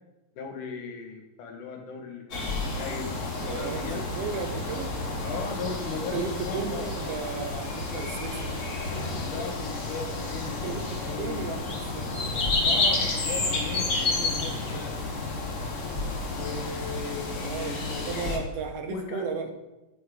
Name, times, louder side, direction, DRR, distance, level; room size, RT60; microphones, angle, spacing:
voice 1, 0.4-4.0 5.2-6.9 9.2-11.5 12.6-15.0 16.3-18.3 18.9-19.3, left 5 dB, 80° left, 3 dB, 3.0 m, -37 dB
sound 1, 2.3-18.4, left 3 dB, 55° left, 0.8 m, -30 dB
voice 2, 3.4-4.9 6.1-8.4 10.5-12.1 17.4-19.5, right 5 dB, 70° right, 6 dB, 1.5 m, -35 dB
8.9 x 8.0 x 5.0 m, 1.0 s
omnidirectional pair, 3.6 m